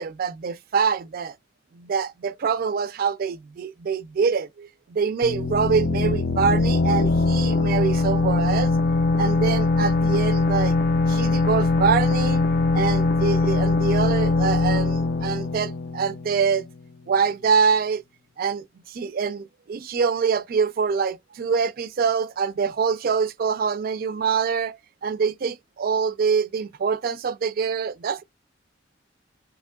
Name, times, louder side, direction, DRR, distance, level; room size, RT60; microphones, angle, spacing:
voice 1, 0.0-1.3 1.7-8.7 9.2-10.8 11.1-12.5 12.7-16.7 17.1-18.0 18.4-28.2, right 6 dB, 50° right, 0.3 m, -25 dB
sound 1, 5.2-16.7, left 3 dB, 55° left, 0.4 m, -22 dB
3.6 x 2.9 x 2.2 m
head